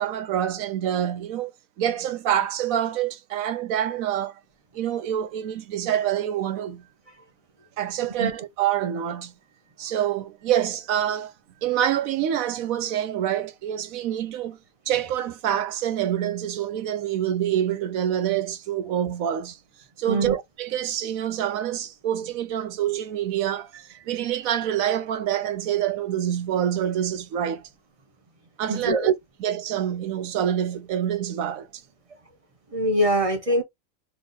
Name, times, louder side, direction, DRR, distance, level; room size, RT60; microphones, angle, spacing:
voice 1, 0.0-1.5 1.8-4.4 4.7-6.8 7.8-9.3 9.8-11.3 11.6-14.6 14.9-19.6 20.0-27.7 28.6-29.1 29.4-31.7, right 10 dB, 65° right, 1.0 m, -26 dB
voice 2, 28.7-29.1 32.7-33.6, equal, 25° right, 0.8 m, -23 dB
3.2 x 3.1 x 3.9 m
omnidirectional pair, 1.8 m